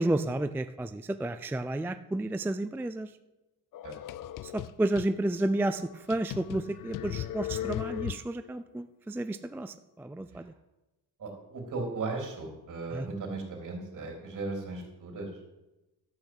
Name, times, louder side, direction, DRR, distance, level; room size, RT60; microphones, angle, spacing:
voice 1, 0.0-3.1 4.4-10.5 12.9-13.1, right 1 dB, 5° right, 10 dB, 0.3 m, -31 dB
sound 1, 3.7-5.1 5.6-5.7 6.1-8.5, left 13 dB, 60° left, 0.5 m, -37 dB
voice 2, 11.2-15.3, right 3 dB, 55° right, 1 dB, 3.9 m, -36 dB
12.5 x 6.1 x 8.1 m, 1.0 s
cardioid pair, 130°, 37 cm